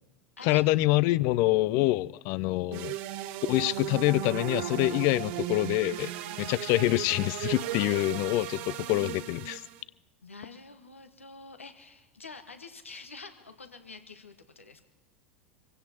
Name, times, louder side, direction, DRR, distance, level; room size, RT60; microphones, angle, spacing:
voice 1, 0.4-2.9 3.5-6.1 6.4-9.6, left 18 dB, 50° left, 0.4 m, -26 dB
sound 1, 2.7-9.8, right 13 dB, 55° right, 1.0 m, -36 dB
voice 2, 10.2-14.8, left 4 dB, 85° left, 1.3 m, -47 dB
26.0 x 16.5 x 2.9 m
figure-of-eight pair, 85°, 7 cm